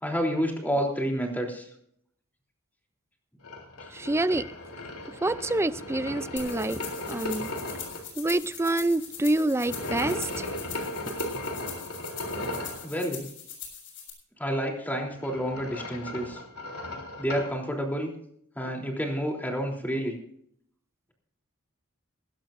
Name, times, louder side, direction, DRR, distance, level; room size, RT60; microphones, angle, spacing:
voice 1, 0.0-1.7 12.8-13.3 14.4-16.4 17.2-18.1 18.5-20.2, equal, 10° left, 3.4 m, -29 dB
sound 1, 3.4-8.0 9.6-12.8 15.0-17.5, left 1 dB, 90° left, 3.4 m, -36 dB
voice 2, 3.9-4.4 5.2-6.8 7.1-7.5 8.2-10.5, right 2 dB, 10° right, 0.5 m, -27 dB
sound 2, 6.4-14.1, left 8 dB, 60° left, 6.7 m, -42 dB
19.0 x 17.5 x 2.6 m
head